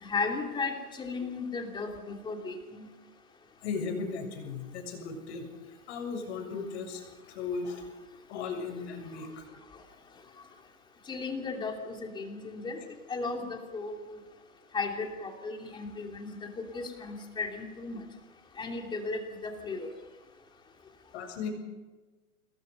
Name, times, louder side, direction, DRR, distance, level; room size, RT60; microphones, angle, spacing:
voice 1, 0.0-2.9 11.1-12.8 13.1-14.2 14.7-16.5 16.7-18.0 18.6-19.9, left 4 dB, 10° left, 2 dB, 3.0 m, -35 dB
voice 2, 3.6-7.9 8.3-9.4 21.1-21.5, left 5 dB, 50° left, 4 dB, 7.0 m, -37 dB
27.5 x 21.0 x 5.4 m, 1.2 s
hypercardioid pair, 155°, 44 cm